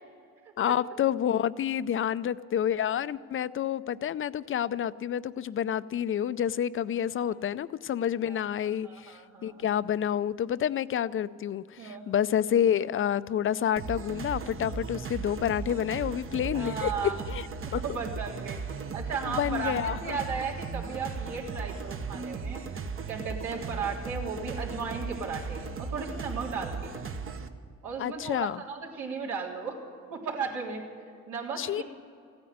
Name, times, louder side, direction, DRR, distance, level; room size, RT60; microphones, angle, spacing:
voice 1, 0.6-17.5 17.7-18.0 19.3-20.2 28.0-28.6 31.6-31.8, left 9 dB, 45° left, 16 dB, 0.5 m, -29 dB
voice 2, 8.3-9.7 11.8-12.1 16.5-17.2 17.8-18.6 18.9-22.6 23.1-26.9 27.8-29.8 30.1-30.8 31.3-31.8, right 5 dB, 80° right, -3 dB, 3.5 m, -35 dB
sound 1, 13.8-27.5, right 5 dB, 45° right, 1.1 m, -37 dB
15.5 x 9.5 x 9.3 m, 2.3 s
cardioid pair, 90°, 30 cm